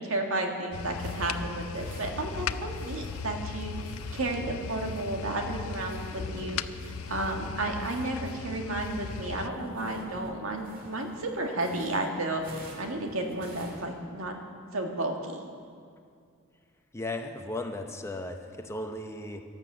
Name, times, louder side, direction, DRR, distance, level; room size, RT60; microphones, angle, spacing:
voice 1, 0.0-3.7 4.1-14.4 14.7-15.5, right 2 dB, 65° right, 2 dB, 1.9 m, -32 dB
sound 1, 0.7-9.5, left 6 dB, 70° left, 0.5 m, -37 dB
sound 2, 0.8-8.4 8.7-13.9, right 1 dB, 40° right, 2.0 m, -48 dB
voice 2, 16.9-19.4, left 2 dB, 15° left, 4 dB, 0.8 m, -36 dB
12.5 x 11.5 x 7.9 m, 2.2 s
head